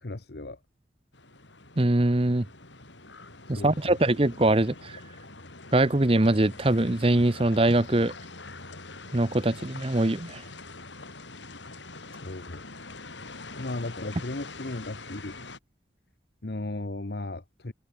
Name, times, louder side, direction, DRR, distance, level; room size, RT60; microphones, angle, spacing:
voice 1, 0.0-0.6 3.5-4.0 12.2-12.6 13.6-15.4 16.4-17.7, left 2 dB, 60° left, 1.1 m, -36 dB
sound 1, 1.1-15.6, left 3 dB, 90° left, 7.9 m, -44 dB
voice 2, 1.8-2.4 3.5-5.0 5.7-8.1 9.1-10.4, right 1 dB, 30° right, 1.0 m, -23 dB
head